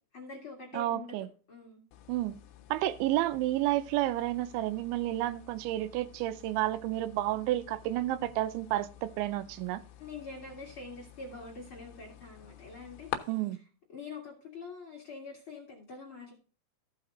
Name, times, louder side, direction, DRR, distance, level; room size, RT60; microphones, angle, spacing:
voice 1, 0.1-1.2 1.5-1.8 10.0-13.3 13.9-16.3, left 3 dB, 45° left, 1.7 m, -45 dB
voice 2, 0.7-1.3 2.1-2.4 2.7-9.8 13.3-13.6, right 15 dB, 90° right, 3.1 m, -31 dB
sound 1, 1.9-13.2, left 12 dB, 75° left, 2.8 m, -48 dB
14.5 x 5.7 x 3.8 m
omnidirectional pair, 5.2 m